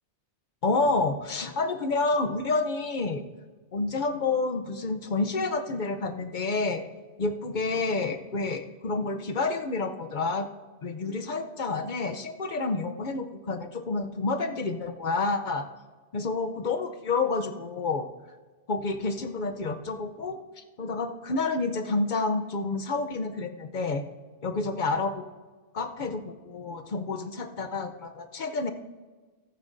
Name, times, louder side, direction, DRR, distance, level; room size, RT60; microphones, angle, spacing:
voice 1, 0.6-3.2 3.7-6.8 7.2-10.5 10.8-15.7 16.1-18.1 18.7-24.0 24.4-25.2 25.7-28.7, left 3 dB, 50° left, 8 dB, 0.8 m, -29 dB
15.0 x 12.5 x 2.6 m, 1.4 s
omnidirectional pair, 1.1 m